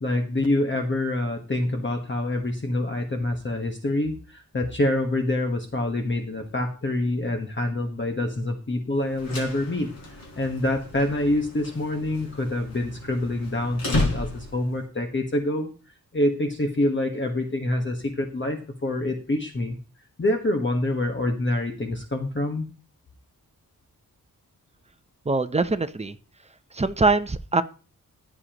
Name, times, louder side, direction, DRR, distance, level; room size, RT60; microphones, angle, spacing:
voice 1, 0.0-19.8 20.2-22.7, left 1 dB, 35° left, 3 dB, 1.4 m, -26 dB
sound 1, 9.0-14.8, left 2 dB, 80° left, 4.0 m, -33 dB
voice 2, 25.3-26.2 26.7-27.6, right 3 dB, 20° right, 10 dB, 0.6 m, -23 dB
15.0 x 9.7 x 3.0 m, 0.37 s
wide cardioid pair, 120°, 35 cm